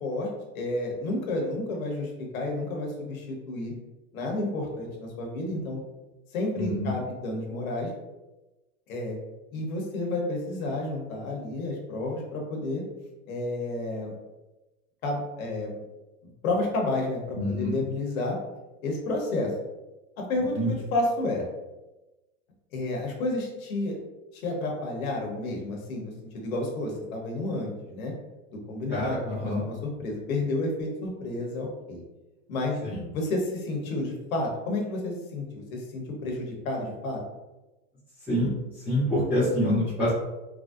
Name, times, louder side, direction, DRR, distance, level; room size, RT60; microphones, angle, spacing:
voice 1, 0.0-3.7 4.1-5.8 6.3-7.9 8.9-9.2 9.5-12.8 13.3-14.1 15.0-15.7 16.2-18.4 18.8-19.5 20.2-21.4 22.7-24.0 24.3-28.1 28.7-29.2 29.4-32.0 32.5-32.8 33.1-37.2, left 2 dB, 75° left, 0 dB, 1.0 m, -31 dB
voice 2, 6.6-6.9 17.4-17.8 20.5-20.7 28.9-29.6 32.8-33.0 38.3-38.5 38.8-40.1, left 1 dB, 5° right, -14 dB, 0.5 m, -26 dB
3.2 x 2.6 x 2.4 m, 1.1 s
supercardioid pair, 165°, 43 cm